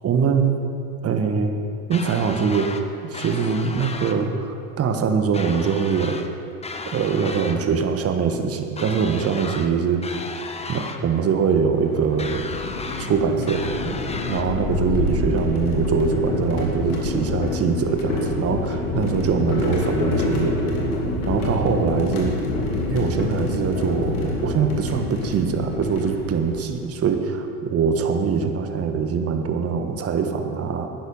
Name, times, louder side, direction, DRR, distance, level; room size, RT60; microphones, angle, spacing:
voice 1, 0.0-0.6 1.0-1.5 1.9-2.8 3.1-6.2 6.8-10.3 10.7-12.5 13.0-14.0 14.3-20.6 21.3-22.4 22.9-30.9, right 6 dB, 35° right, 6 dB, 1.4 m, -23 dB
sound 1, 1.9-2.8 3.1-4.2 5.3-6.3 6.6-7.6 8.8-9.7 10.0-11.0 12.2-13.1 13.5-14.5, left 3 dB, 15° left, 0.9 m, -34 dB
sound 2, 11.7-26.7, left 2 dB, 85° left, 2.8 m, -26 dB
12.0 x 10.0 x 5.5 m, 2.5 s
hypercardioid pair, 90°, 42 cm